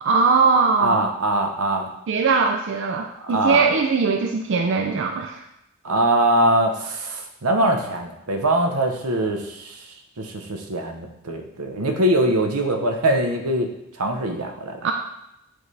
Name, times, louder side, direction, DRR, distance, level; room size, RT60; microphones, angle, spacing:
voice 1, 0.0-1.1 2.1-5.4 14.8-14.9, right 4 dB, 55° right, 4 dB, 0.4 m, -20 dB
voice 2, 0.8-1.9 3.2-3.6 5.8-9.8 10.2-13.7 14.0-14.8, right 1 dB, 85° right, 4 dB, 0.9 m, -22 dB
8.0 x 3.8 x 3.3 m, 0.83 s
head